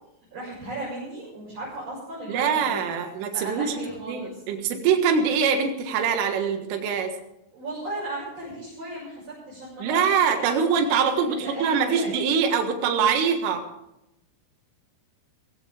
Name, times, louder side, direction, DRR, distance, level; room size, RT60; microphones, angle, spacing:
voice 1, 0.3-2.8 3.3-4.4 7.5-10.6 11.2-12.3, right 2 dB, 30° right, -9 dB, 7.3 m, -36 dB
voice 2, 2.3-3.7 4.1-7.1 9.8-13.6, right 6 dB, 75° right, 4 dB, 4.0 m, -23 dB
18.5 x 16.0 x 3.6 m, 0.85 s
omnidirectional pair, 5.8 m